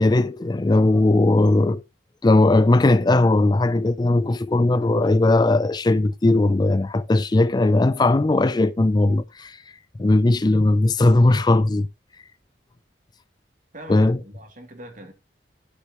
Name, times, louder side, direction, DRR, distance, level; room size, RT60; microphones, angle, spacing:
voice 1, 0.0-1.8 2.2-9.6 10.0-11.9 13.9-14.2, left 2 dB, 25° left, 0.4 m, -18 dB
voice 2, 13.7-15.1, right 1 dB, 45° right, 2.7 m, -41 dB
12.0 x 6.6 x 3.0 m
head